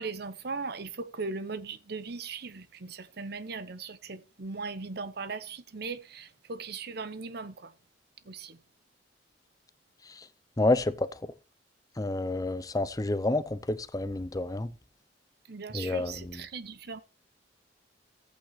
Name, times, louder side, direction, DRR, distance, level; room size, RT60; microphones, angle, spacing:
voice 1, 0.0-7.7 8.2-8.6 15.5-17.0, right 4 dB, 60° right, 0.9 m, -38 dB
voice 2, 10.6-11.1 12.0-14.7 15.7-16.1, left 2 dB, 20° left, 0.6 m, -28 dB
14.5 x 8.5 x 3.2 m
head